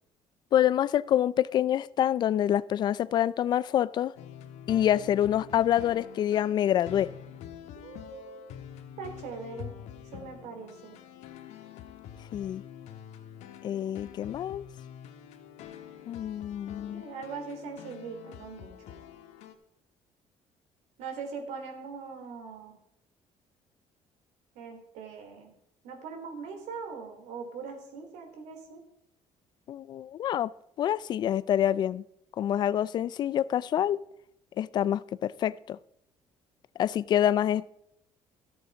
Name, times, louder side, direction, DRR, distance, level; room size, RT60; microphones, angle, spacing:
voice 1, 0.5-4.1 4.7-7.1 12.3-12.6 13.6-14.7 16.1-17.0 29.7-30.5 30.8-32.0 32.4-34.0 34.6-35.8 36.8-37.7, left 11 dB, 40° left, 0.4 m, -26 dB
sound 1, 4.2-19.5, left 9 dB, 80° left, 1.4 m, -46 dB
voice 2, 7.8-8.6 9.0-9.7 10.1-11.0 16.9-19.0 21.0-22.8 24.5-25.5 25.8-28.8, right 5 dB, 85° right, 3.2 m, -41 dB
13.5 x 8.0 x 4.8 m
cardioid pair, 175°, 12 cm